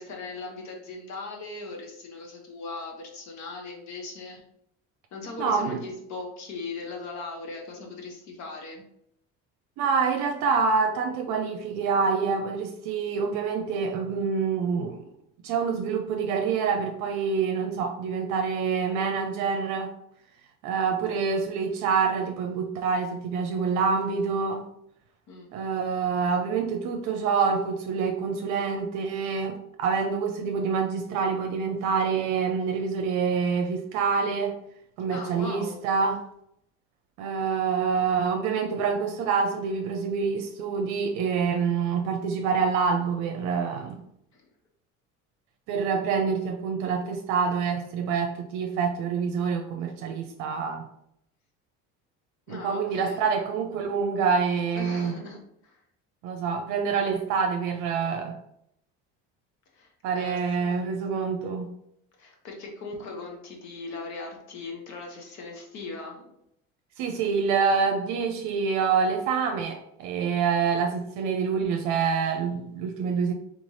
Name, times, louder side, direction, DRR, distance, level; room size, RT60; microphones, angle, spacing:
voice 1, 0.0-4.4 5.1-8.8 25.3-25.5 35.1-35.8 44.3-44.4 52.5-53.2 54.7-55.8 59.7-60.9 62.2-66.3, left 3 dB, 60° left, 1 dB, 1.3 m, -39 dB
voice 2, 5.4-5.8 9.8-15.0 15.4-19.9 20.6-24.6 25.5-34.6 35.0-36.2 37.2-44.0 45.7-50.8 52.5-55.2 56.2-58.4 60.0-61.7 67.0-73.3, right 5 dB, 70° right, 4 dB, 0.6 m, -26 dB
3.5 x 3.2 x 4.0 m, 0.75 s
supercardioid pair, 100°, 31 cm